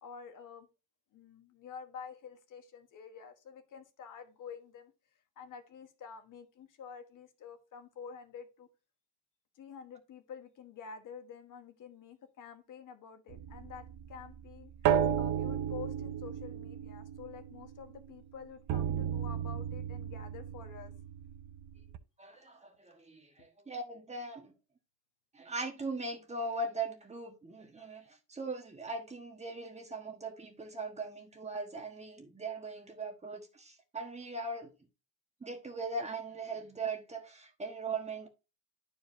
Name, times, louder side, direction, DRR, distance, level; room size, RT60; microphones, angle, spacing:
voice 1, 0.0-0.7 1.1-8.7 9.5-14.7 15.2-20.9 23.4-23.5, left 6 dB, 45° left, 1.4 m, -49 dB
sound 1, 13.3-18.1 18.7-22.0, right 9 dB, 45° right, 0.7 m, -34 dB
voice 2, 22.2-24.5 25.3-34.7 35.4-38.3, right 3 dB, 15° right, 1.4 m, -40 dB
11.5 x 4.7 x 2.7 m
cardioid pair, 145°, 42 cm